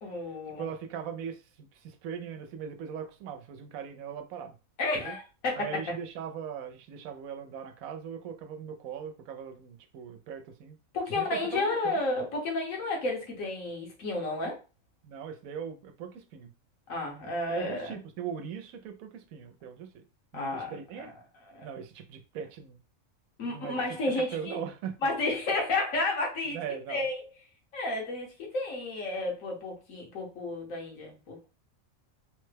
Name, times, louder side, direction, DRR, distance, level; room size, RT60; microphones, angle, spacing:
voice 1, 0.0-0.7 4.8-5.9 10.9-14.6 16.9-18.0 20.3-20.7 21.0-21.1 21.5-21.7 23.4-24.6 25.0-26.6 26.9-27.2 27.7-31.5, left 2 dB, 75° left, 1.4 m, -32 dB
voice 2, 0.6-4.6 5.0-5.2 5.5-10.8 11.1-12.0 15.0-16.5 17.5-20.1 20.3-21.1 21.6-22.8 23.4-23.8 24.2-25.0 26.5-27.1, right 7 dB, 85° right, 1.0 m, -40 dB
3.3 x 2.1 x 3.2 m
omnidirectional pair, 1.4 m